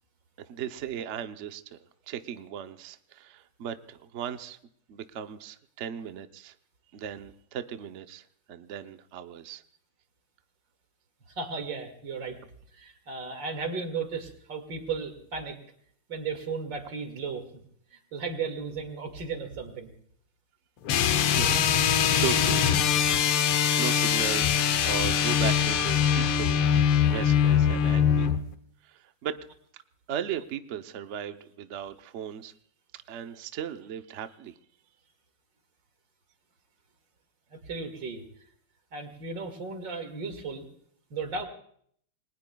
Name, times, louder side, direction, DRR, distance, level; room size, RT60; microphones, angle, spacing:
voice 1, 0.5-1.8 2.1-4.6 4.9-6.5 6.9-9.6 21.3-22.6 22.9-23.2 23.8-24.5 24.8-26.7 27.0-28.3 28.8-29.4 30.1-32.5 32.9-34.5, right 9 dB, 80° right, 8 dB, 0.6 m, -37 dB
voice 2, 11.3-12.4 12.8-15.6 16.1-17.4 17.9-19.9 37.5-38.3 38.9-40.6 41.1-41.5, right 4 dB, 55° right, 6 dB, 2.7 m, -35 dB
sound 1, 20.9-28.4, left 8 dB, 80° left, 1.8 m, -23 dB
29.0 x 21.0 x 2.3 m, 0.62 s
omnidirectional pair, 2.4 m